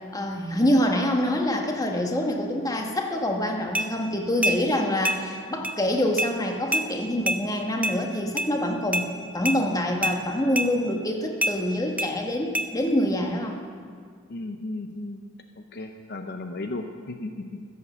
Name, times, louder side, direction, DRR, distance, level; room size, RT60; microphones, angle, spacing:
voice 1, 0.1-9.1 9.3-13.6, left 1 dB, 20° left, 2 dB, 1.3 m, -26 dB
sound 1, 3.7-3.9 4.4-4.6 5.0-5.2 5.6-5.8 6.2-6.3 6.7-6.9 7.3-7.4 7.8-8.0 8.4-8.5 8.9-9.1 9.5-9.6 10.0-10.2 10.6-10.7 11.4-11.6 12.0-12.1 12.5-12.7, right 1 dB, 5° right, 0.7 m, -25 dB
voice 2, 14.3-15.2 15.7-17.6, left 2 dB, 55° left, 5 dB, 0.7 m, -35 dB
14.0 x 8.5 x 6.9 m, 2.1 s
head